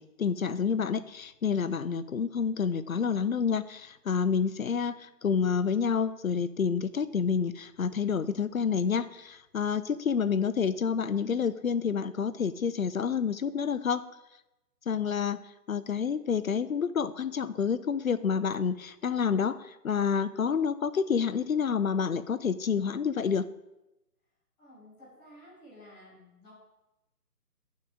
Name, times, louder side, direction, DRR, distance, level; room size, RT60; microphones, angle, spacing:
voice 1, 0.2-5.0 5.2-14.0 14.9-15.4 15.7-19.6 19.8-23.5, left 6 dB, 60° left, 15 dB, 0.5 m, -28 dB
voice 2, 24.6-26.6, left 1 dB, 10° left, -13 dB, 3.4 m, -53 dB
11.5 x 6.2 x 3.6 m, 0.94 s
figure-of-eight pair, 150°, 48 cm